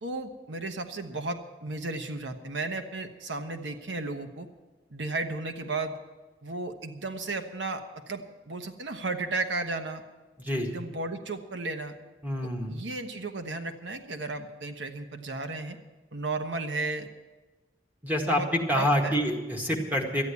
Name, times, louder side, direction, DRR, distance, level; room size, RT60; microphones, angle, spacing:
voice 1, 0.0-4.5 4.9-5.9 6.4-10.0 10.6-11.9 12.7-15.8 16.1-17.1 18.2-18.5 18.8-19.2, right 3 dB, 85° right, 6 dB, 1.1 m, -34 dB
voice 2, 10.4-10.7 12.2-12.7 18.0-20.2, equal, 10° right, 0 dB, 1.8 m, -27 dB
13.0 x 9.7 x 8.3 m, 1.2 s
head